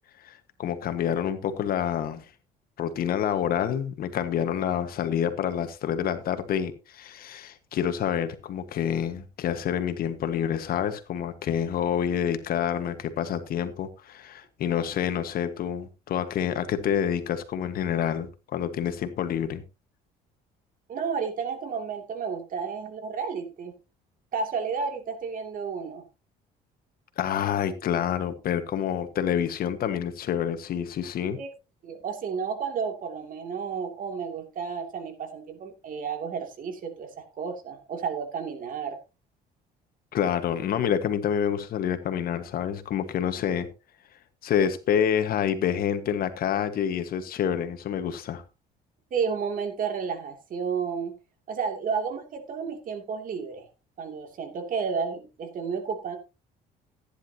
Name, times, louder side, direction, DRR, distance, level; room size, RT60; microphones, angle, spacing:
voice 1, 0.2-2.2 2.8-19.6 27.2-31.4 40.1-43.7 44.4-48.4, left 9 dB, 60° left, 1.5 m, -28 dB
voice 2, 20.9-23.7 24.3-26.0 31.4-31.5 31.8-39.0 49.1-51.1 51.5-53.7 54.0-56.2, right 6 dB, 55° right, 2.8 m, -32 dB
15.0 x 10.0 x 2.9 m
cardioid pair, 110°, 17 cm